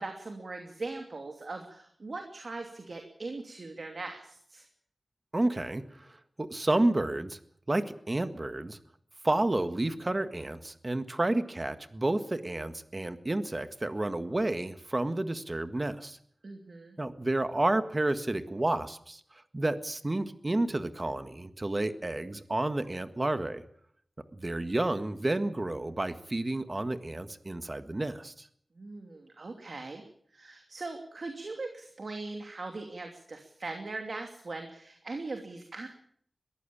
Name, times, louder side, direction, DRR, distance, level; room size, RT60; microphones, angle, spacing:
voice 1, 0.0-4.7 16.4-17.0 28.8-30.0 30.3-35.9, right 3 dB, 60° right, 4 dB, 2.8 m, -40 dB
voice 2, 5.3-7.4 7.7-8.8 9.2-16.2 17.0-19.2 19.5-23.6 24.3-28.5, right 2 dB, 30° right, 10 dB, 1.7 m, -30 dB
22.0 x 15.0 x 8.7 m, 0.64 s
wide cardioid pair, 100°, 0 cm